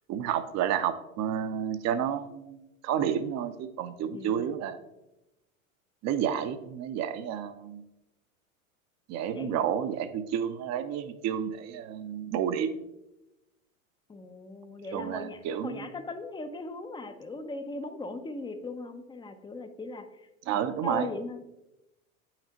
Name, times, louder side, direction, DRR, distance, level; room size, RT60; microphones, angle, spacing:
voice 1, 0.1-4.8 6.0-7.8 9.1-12.7 14.9-15.9 20.5-21.1, right 9 dB, 40° right, 11 dB, 0.7 m, -30 dB
voice 2, 4.1-4.5 9.3-9.7 14.1-21.4, left 3 dB, 10° left, 8 dB, 0.5 m, -39 dB
8.5 x 5.9 x 2.9 m, 0.94 s
hypercardioid pair, 95°, 42 cm